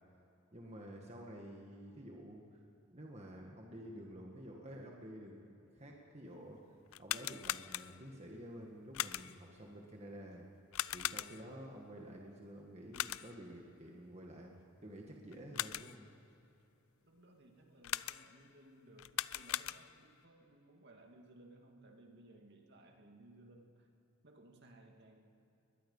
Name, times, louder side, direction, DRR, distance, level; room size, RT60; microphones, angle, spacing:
voice 1, 0.5-2.6 2.9-6.6 7.0-10.5 10.9-16.0, equal, 30° right, 0 dB, 1.8 m, -50 dB
sound 1, 6.9-8.2 8.9-9.5 10.7-11.6 12.9-13.5 15.3-16.1 17.8-18.5 19.0-20.1, left 13 dB, 75° left, 0.4 m, -40 dB
voice 2, 17.0-23.9 24.2-25.2, right 1 dB, 50° right, 2 dB, 2.3 m, -60 dB
23.0 x 20.5 x 5.6 m, 2.8 s
head